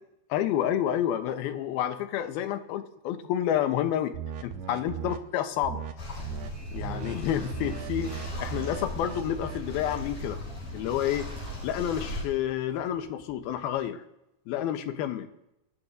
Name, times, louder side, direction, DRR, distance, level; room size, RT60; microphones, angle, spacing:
voice 1, 0.3-4.1 4.4-5.8 6.7-10.4 10.7-11.3 11.6-14.0 14.5-15.3, left 10 dB, 80° left, 8 dB, 2.7 m, -29 dB
sound 1, 4.1-5.2 5.6-5.9 6.2-6.5 6.7-10.0, right 7 dB, 75° right, 1.7 m, -38 dB
Train, 5.5-13.8, right 2 dB, 30° right, 7.9 m, -51 dB
sound 2, 6.0-12.2, left 1 dB, 60° left, 7.3 m, -38 dB
25.0 x 13.5 x 2.7 m, 0.86 s
omnidirectional pair, 4.5 m